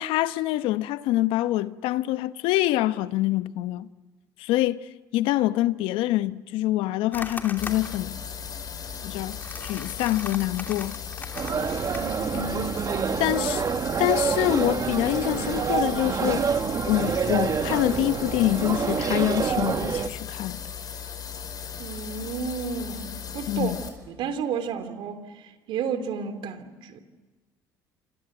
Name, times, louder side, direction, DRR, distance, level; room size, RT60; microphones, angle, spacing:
voice 1, 0.0-3.9 4.4-4.9 5.1-8.2 9.0-11.0 13.2-13.6 14.0-16.5 16.9-20.6 23.5-23.8, left 15 dB, 75° left, 0.9 m, -25 dB
sound 1, 7.1-12.1, left 3 dB, 20° left, 2.9 m, -40 dB
sound 2, 7.6-23.9, left 8 dB, 45° left, 5.3 m, -37 dB
sound 3, 11.4-20.1, right 6 dB, 40° right, 1.6 m, -27 dB
voice 2, 11.9-13.4 21.8-27.0, right 5 dB, 65° right, 3.1 m, -32 dB
27.5 x 27.0 x 8.0 m
supercardioid pair, 75°, 9 cm